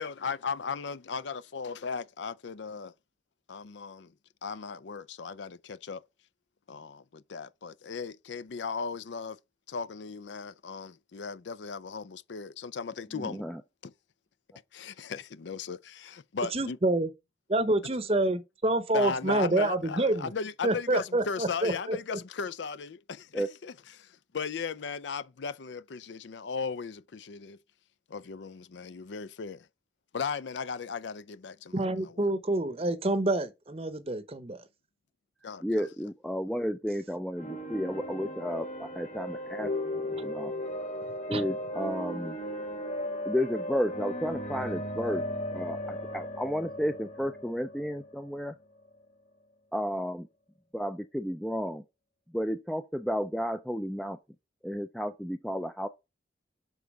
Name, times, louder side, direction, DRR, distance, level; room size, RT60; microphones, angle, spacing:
voice 1, 0.0-2.9 3.5-4.1 4.4-6.0 6.7-9.4 9.7-13.4 13.8-13.9 14.7-16.8 18.9-27.6 28.1-29.7 30.1-31.8 35.4-35.8, left 5 dB, 75° left, 0.5 m, -37 dB
voice 2, 13.2-13.6 23.3-23.5 35.6-40.5 41.3-42.4 43.3-45.2 45.5-48.6 49.7-50.3 50.7-51.8 52.3-54.2 54.6-55.9, equal, ahead, 0.4 m, -32 dB
voice 3, 16.5-17.1 17.5-20.3 20.6-22.2 31.7-34.7 41.3-41.5, right 2 dB, 30° right, 0.8 m, -27 dB
sound 1, 37.3-49.0, left 1 dB, 40° left, 1.5 m, -36 dB
7.2 x 3.9 x 4.7 m
head